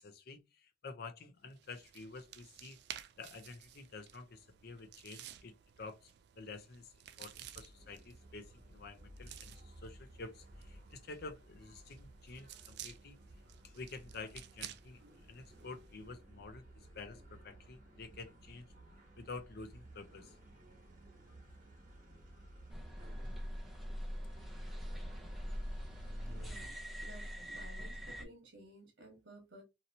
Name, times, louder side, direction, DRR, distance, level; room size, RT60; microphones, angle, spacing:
voice 1, 0.0-2.8 3.2-6.1 6.4-6.9 7.2-13.2 13.6-15.0 15.3-16.6 16.9-18.7 19.2-20.3, left 3 dB, 60° left, 0.6 m, -49 dB
sound 1, 1.5-16.1, right 11 dB, 65° right, 0.3 m, -54 dB
sound 2, 7.3-26.7, right 1 dB, 50° right, 1.1 m, -55 dB
sound 3, 22.7-28.2, equal, ahead, 0.6 m, -43 dB
voice 2, 26.3-29.6, right 1 dB, 80° right, 1.0 m, -56 dB
2.8 x 2.8 x 2.6 m
head